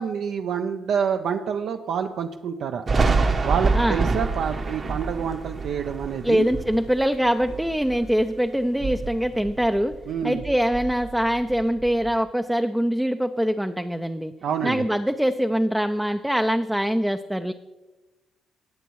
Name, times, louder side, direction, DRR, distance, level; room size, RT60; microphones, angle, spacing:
voice 1, 0.0-2.8 3.4-6.5 10.1-10.4 14.4-14.8, right 7 dB, 70° right, 5 dB, 0.5 m, -27 dB
Thunder, 2.9-8.3 8.7-10.1 10.4-12.1, right 3 dB, 40° right, 0.9 m, -27 dB
voice 2, 6.2-9.9 10.2-14.3 14.6-17.5, equal, 5° right, 7 dB, 0.4 m, -23 dB
18.0 x 6.9 x 3.1 m, 1.1 s
cardioid pair, 90°, 0 cm